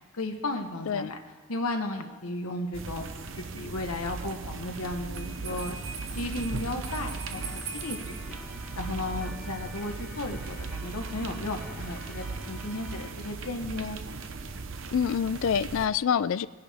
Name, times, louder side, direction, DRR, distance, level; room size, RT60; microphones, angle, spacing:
voice 1, 0.1-1.2 1.5-3.0 3.4-5.8 6.1-8.0 8.3-8.4 8.7-14.0, left 2 dB, 80° left, 4 dB, 1.1 m, -34 dB
sound 1, 2.7-15.9, right 4 dB, 60° right, 0.8 m, -38 dB
Bell, 5.1-8.2, right 5 dB, 85° right, 5.0 m, -41 dB
Organ, 7.4-13.1, equal, ahead, 1.2 m, -48 dB
voice 2, 14.9-16.5, left 7 dB, 60° left, 18 dB, 0.3 m, -26 dB
19.5 x 10.5 x 3.5 m, 1.4 s
head